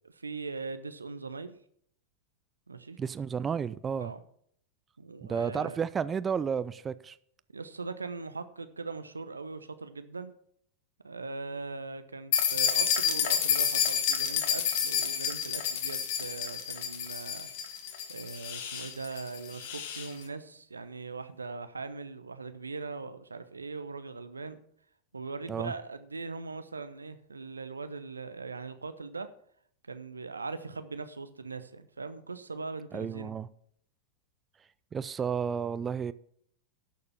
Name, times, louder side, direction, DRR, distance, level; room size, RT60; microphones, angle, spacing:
voice 1, 0.2-1.5 2.7-3.0 4.0-4.2 5.0-5.8 7.5-10.3 11.0-17.5 18.1-24.6 25.1-29.3 29.9-33.3, right 4 dB, 75° right, 0.8 m, -40 dB
voice 2, 3.0-4.1 5.2-7.2 25.5-25.7 32.9-33.5 34.9-36.1, right 7 dB, 20° right, 0.4 m, -32 dB
sound 1, 12.3-20.1, left 8 dB, 50° left, 1.4 m, -30 dB
11.5 x 6.8 x 7.1 m
figure-of-eight pair, 90°, 0 cm